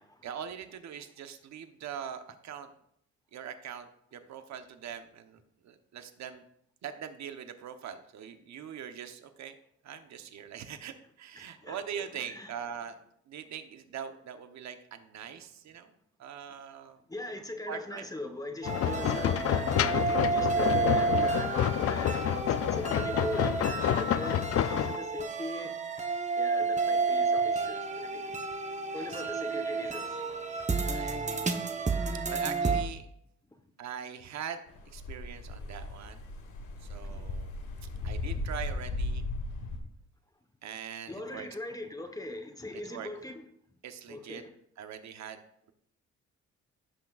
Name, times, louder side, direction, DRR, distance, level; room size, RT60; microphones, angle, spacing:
voice 1, 0.2-2.7 3.3-6.4 6.8-9.5 9.8-13.0 13.3-15.9 16.2-17.0 17.7-18.0 29.0-29.2 30.9-31.4 32.3-33.0 33.8-34.6 34.9-36.2 36.8-37.5 38.0-39.2 40.6-41.5 42.9-43.1 43.8-44.4 44.8-45.4, right 8 dB, 65° right, 1.0 m, -42 dB
voice 2, 11.3-12.5 17.1-25.8 26.4-28.4 28.9-30.4 33.6-33.7 36.9-37.4 37.9-38.1 41.1-43.4 43.7-43.8 44.1-44.5, left 2 dB, 10° left, 1.1 m, -41 dB
sound 1, 18.6-32.8, right 4 dB, 25° right, 0.9 m, -31 dB
sound 2, 18.7-25.0, left 10 dB, 50° left, 0.4 m, -28 dB
sound 3, 34.8-39.8, left 2 dB, 80° left, 1.5 m, -36 dB
16.0 x 5.9 x 2.4 m
cardioid pair, 90°, 30 cm